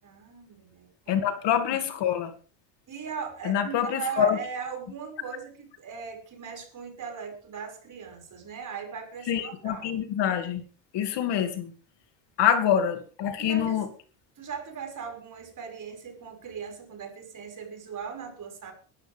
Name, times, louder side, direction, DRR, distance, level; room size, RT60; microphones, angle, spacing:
voice 1, 0.0-1.4 2.9-10.0 12.4-12.5 13.4-13.8 14.4-18.7, right 6 dB, 40° right, 4 dB, 6.2 m, -39 dB
voice 2, 1.1-2.3 3.4-4.4 9.3-10.6 10.9-11.7 12.4-13.8, left 9 dB, 55° left, 7 dB, 2.6 m, -25 dB
21.5 x 13.0 x 3.6 m, 0.39 s
cardioid pair, 115°, 49 cm